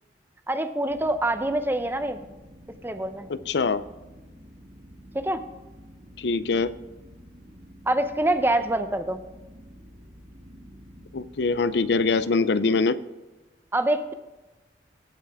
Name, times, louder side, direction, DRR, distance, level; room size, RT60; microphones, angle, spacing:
voice 1, 0.5-2.2 2.8-3.3 5.1-5.4 7.9-9.2 13.7-14.1, right 1 dB, 10° right, 8 dB, 0.6 m, -25 dB
sound 1, 0.9-12.2, equal, 60° right, 2.4 m, -49 dB
voice 2, 3.3-3.8 6.2-6.7 11.1-13.0, left 4 dB, 70° left, 14 dB, 0.5 m, -23 dB
17.0 x 5.7 x 3.5 m, 1.1 s
head